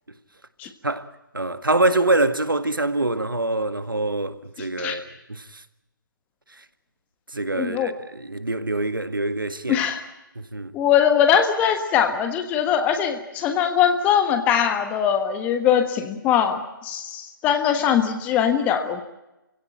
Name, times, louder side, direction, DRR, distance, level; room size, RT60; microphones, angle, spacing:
voice 1, 1.3-5.0 5.3-5.6 7.3-9.8 10.4-10.7, right 2 dB, 75° right, 1.8 m, -24 dB
voice 2, 7.5-7.9 9.7-10.0 10.7-19.0, left 8 dB, 15° left, 1.3 m, -21 dB
28.5 x 17.0 x 8.9 m
figure-of-eight pair, 145°, 11 cm